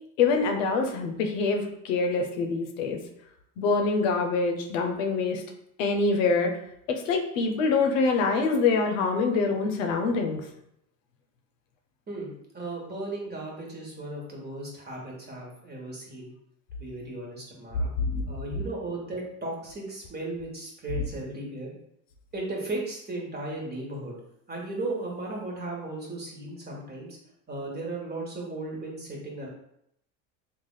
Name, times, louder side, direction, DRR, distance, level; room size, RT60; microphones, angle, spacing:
voice 1, 0.2-3.0 3.6-5.4 5.8-6.5 6.9-10.4 18.1-18.2, left 4 dB, 85° left, 3 dB, 0.7 m, -25 dB
voice 2, 12.1-16.3 16.7-17.9 18.3-21.7 22.3-24.2 24.5-27.2 27.5-29.5, right 2 dB, 25° right, -2 dB, 1.3 m, -36 dB
3.3 x 2.4 x 3.7 m, 0.74 s
supercardioid pair, 95°, 38 cm